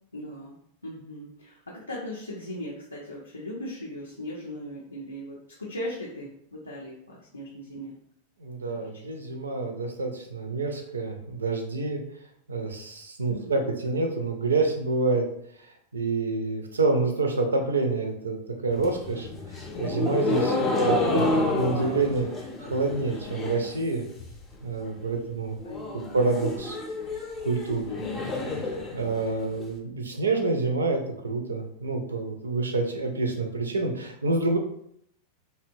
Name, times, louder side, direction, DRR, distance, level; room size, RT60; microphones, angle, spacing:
voice 1, 0.1-0.6 0.8-7.9 8.7-9.0 13.3-13.7 25.6-26.0 27.9-28.1, left 1 dB, 80° left, -4 dB, 0.5 m, -38 dB
voice 2, 8.4-12.0 12.5-15.2 15.9-18.4 18.6-19.3 19.8-22.3 22.6-24.0 24.6-25.6 26.1-26.8 27.4-27.8 28.9-34.6, right 3 dB, 75° right, 4 dB, 0.4 m, -27 dB
sound 1, 18.7-23.7 24.0-24.6 24.9-25.0 25.2-25.3 25.6-29.6, left 2 dB, 25° left, 0.5 m, -29 dB
2.7 x 2.1 x 2.6 m, 0.70 s
figure-of-eight pair, 90°, 0 cm